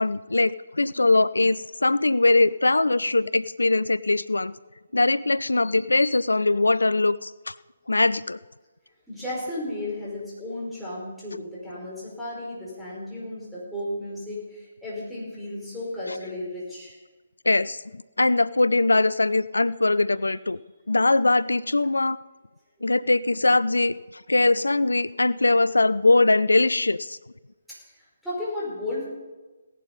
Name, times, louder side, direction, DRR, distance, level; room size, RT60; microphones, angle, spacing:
voice 1, 0.0-4.5 4.9-7.5 7.9-8.4 17.5-17.8 18.2-20.6 20.9-22.2 22.8-27.2, left 2 dB, 80° left, 18 dB, 0.4 m, -21 dB
voice 2, 9.1-16.9 27.7-29.1, left 1 dB, ahead, -9 dB, 5.5 m, -34 dB
17.0 x 11.0 x 5.5 m, 1.2 s
figure-of-eight pair, 145°, 0 cm